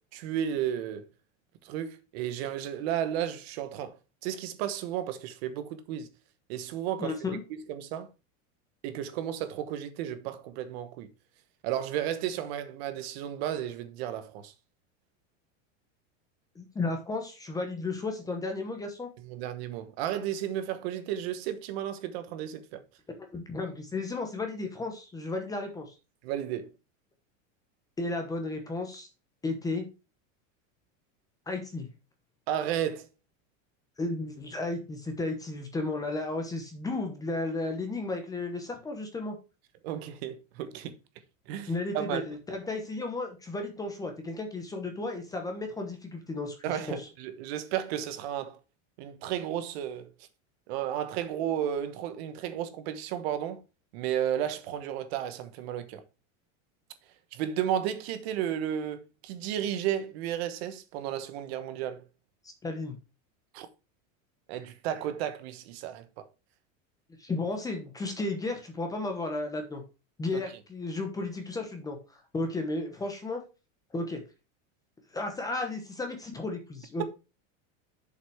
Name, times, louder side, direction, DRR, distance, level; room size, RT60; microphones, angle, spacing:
voice 1, 0.1-1.0 1.6-3.9 4.2-6.1 6.5-7.1 7.7-8.1 8.8-11.1 11.6-14.5 19.2-22.8 26.2-26.7 32.5-33.1 39.8-40.9 41.5-42.2 46.6-48.6 49.0-50.1 50.7-53.6 53.9-56.0 57.3-62.0 63.5-63.7 64.5-66.3 70.3-70.4, right 10 dB, 50° right, 1.2 m, -33 dB
voice 2, 7.0-7.4 16.5-19.1 23.3-26.0 28.0-29.1 29.4-29.9 31.5-31.9 34.0-39.4 41.7-47.1 62.4-62.9 67.2-69.8 70.2-73.4 73.9-74.2 75.1-77.0, left 2 dB, 10° left, 1.0 m, -34 dB
7.1 x 5.5 x 4.7 m
supercardioid pair, 175°, 39 cm